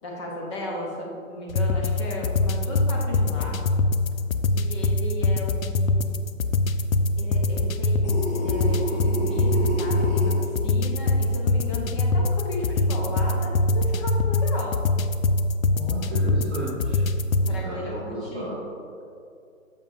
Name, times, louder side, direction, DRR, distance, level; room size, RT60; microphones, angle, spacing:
voice 1, 0.0-3.5 4.5-6.3 7.2-14.8 17.5-18.5, left 1 dB, 20° left, -2 dB, 1.0 m, -35 dB
sound 1, 1.5-17.6, left 2 dB, 70° left, 0.6 m, -24 dB
sound 2, 8.0-10.4, equal, 55° left, 1.6 m, -29 dB
voice 2, 15.7-17.1 17.4-18.5, right 1 dB, 10° right, -11 dB, 0.5 m, -34 dB
9.9 x 7.1 x 2.6 m, 2.5 s
figure-of-eight pair, 140°, 42 cm